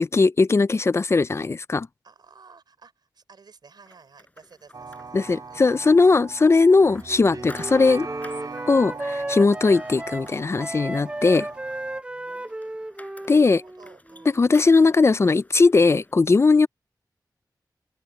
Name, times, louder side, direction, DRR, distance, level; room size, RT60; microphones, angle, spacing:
voice 1, 0.0-1.9 5.1-8.1 8.7-11.5 13.3-13.6 14.4-16.7, left 4 dB, 40° left, 0.4 m, -19 dB
voice 2, 2.0-5.7 6.0-6.2 6.7-6.9 7.4-7.6 12.1-14.4 16.5-16.7, right 5 dB, 75° right, 4.2 m, -54 dB
sound 1, 3.9-16.1, left 2 dB, 20° left, 5.1 m, -51 dB
sound 2, 4.7-12.0, right 4 dB, 60° right, 3.6 m, -40 dB
Wind instrument woodwind instrument, 6.6-14.6, right 1 dB, 15° right, 0.6 m, -35 dB
open air
wide cardioid pair, 120°, 7 cm